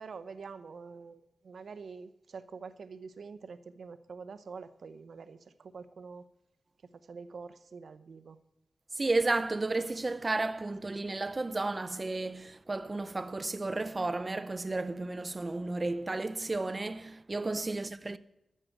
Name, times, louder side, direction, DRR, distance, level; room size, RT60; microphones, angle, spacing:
voice 1, 0.0-6.2 6.8-8.4 17.7-17.8, right 5 dB, 80° right, 0.7 m, -46 dB
voice 2, 9.0-18.2, right 2 dB, 35° right, 0.6 m, -32 dB
14.0 x 6.5 x 7.7 m
cardioid pair, 65°, 0 cm